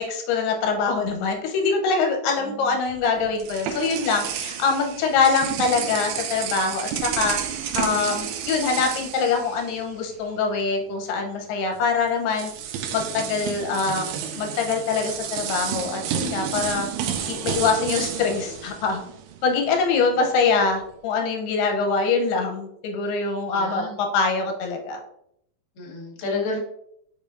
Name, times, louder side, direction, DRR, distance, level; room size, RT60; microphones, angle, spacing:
voice 1, 0.0-7.4 7.7-12.5 12.9-14.1 14.4-16.9 17.3-19.0 19.4-25.0, left 4 dB, 85° left, 3 dB, 2.9 m, -24 dB
voice 2, 2.4-2.8 21.7-21.8 23.5-24.0 25.7-26.6, left 3 dB, 50° left, -3 dB, 1.5 m, -31 dB
sound 1, 2.9-10.2 10.4-10.6 11.8-11.9 12.3-19.5, right 8 dB, 90° right, 2.6 m, -31 dB
7.1 x 5.2 x 2.6 m, 0.74 s
omnidirectional pair, 4.5 m